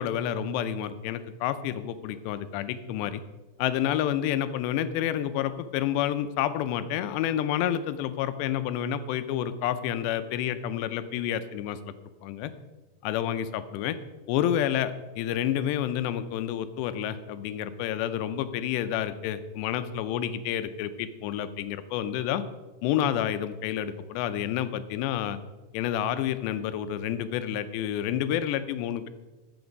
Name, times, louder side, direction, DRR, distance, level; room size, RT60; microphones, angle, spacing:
voice 1, 0.0-3.2 3.6-11.8 12.2-12.5 13.0-14.0 14.3-22.4 22.8-25.4 25.7-29.1, left 10 dB, 85° left, 12 dB, 2.9 m, -29 dB
14.0 x 7.0 x 5.2 m, 1.2 s
omnidirectional pair, 4.9 m